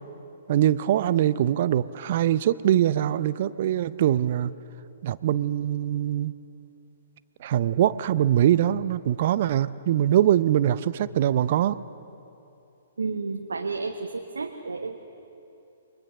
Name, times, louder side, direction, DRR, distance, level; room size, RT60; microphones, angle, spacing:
voice 1, 0.5-4.5 5.0-6.3 7.4-11.8, right 11 dB, 45° right, 16 dB, 0.6 m, -23 dB
voice 2, 13.0-15.0, right 4 dB, 70° right, 4 dB, 1.2 m, -31 dB
29.0 x 23.0 x 6.8 m, 2.8 s
figure-of-eight pair, 120°, 0 cm